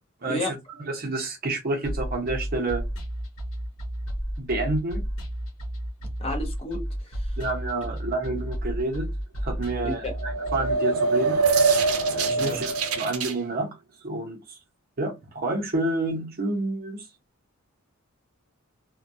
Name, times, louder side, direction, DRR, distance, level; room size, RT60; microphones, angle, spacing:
voice 1, 0.2-0.6 0.8-2.8 4.4-5.0 7.4-9.1 9.4-11.4 12.1-13.7 14.0-14.6 15.0-17.0, right 2 dB, 45° right, 0.7 m, -29 dB
sound 1, 1.8-10.7, equal, 75° left, 0.9 m, -32 dB
voice 2, 6.2-7.3 9.8-10.1 12.3-12.6, left 2 dB, 25° left, 0.6 m, -32 dB
sound 2, 10.0-13.3, right 4 dB, 85° right, 0.5 m, -23 dB
2.2 x 2.2 x 2.6 m
head